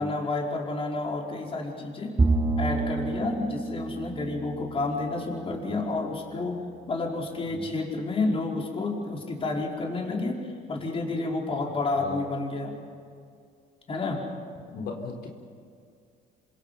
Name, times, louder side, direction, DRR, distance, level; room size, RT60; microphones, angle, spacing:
voice 1, 0.0-2.1 2.6-6.6 6.9-12.8 13.9-14.3, left 3 dB, 35° left, 0 dB, 4.9 m, -30 dB
Bowed string instrument, 2.2-5.7, right 3 dB, 20° right, 2.5 m, -28 dB
voice 2, 14.7-15.3, left 4 dB, 75° left, 2 dB, 4.2 m, -37 dB
28.0 x 26.0 x 5.8 m, 2.3 s
cardioid pair, 110°, 17 cm